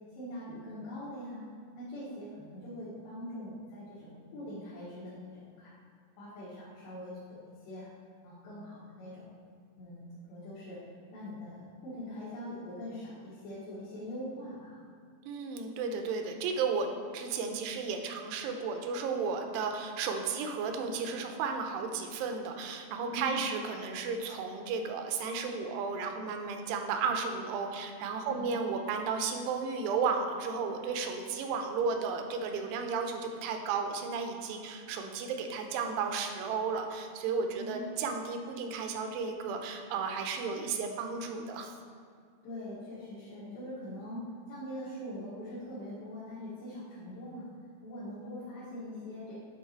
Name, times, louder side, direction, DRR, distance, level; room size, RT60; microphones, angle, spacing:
voice 1, 0.1-1.4 1.8-5.8 6.2-7.9 8.2-9.3 9.8-10.8 11.1-14.8 23.1-23.5 28.2-28.6 37.5-37.9 42.4-47.5 47.8-49.3, left 1 dB, 85° left, -10 dB, 3.7 m, -43 dB
voice 2, 15.3-41.7, right 5 dB, 85° right, 4 dB, 2.7 m, -33 dB
10.5 x 4.0 x 4.4 m, 2.2 s
omnidirectional pair, 4.7 m